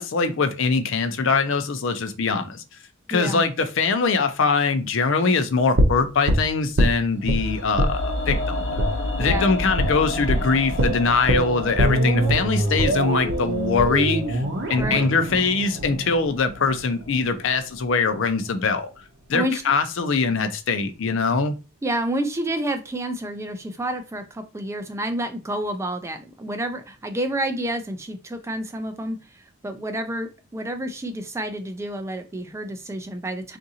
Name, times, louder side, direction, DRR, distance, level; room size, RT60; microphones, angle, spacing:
voice 1, 0.0-2.6 3.1-8.6 9.2-14.4 14.7-19.0 19.3-21.5, left 4 dB, 65° left, 0.5 m, -22 dB
voice 2, 3.1-3.4 9.2-9.5 14.8-15.1 19.3-19.6 21.8-29.2 29.6-33.6, right 1 dB, 15° right, 0.3 m, -29 dB
sound 1, 5.8-7.4 7.8-8.0 8.3-8.4 8.8-8.9 9.3-9.4 9.8-10.0 10.3-10.4 10.8-16.8 17.1-17.2, right 1 dB, 60° right, 0.7 m, -23 dB
sound 2, 7.2-17.3 17.6-17.7, left 1 dB, 85° left, 0.9 m, -31 dB
3.7 x 2.5 x 2.7 m
head